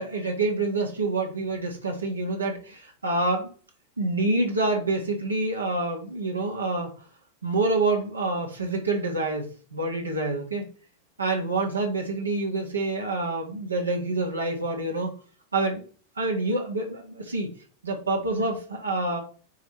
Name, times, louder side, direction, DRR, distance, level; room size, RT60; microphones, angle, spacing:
voice 1, 0.0-3.5 4.0-6.9 7.4-10.6 11.2-15.1 15.5-15.8 16.2-17.5 17.8-19.2, right 2 dB, 80° right, 0 dB, 1.5 m, -27 dB
9.0 x 3.5 x 3.1 m, 0.40 s
figure-of-eight pair, 90°, 0 cm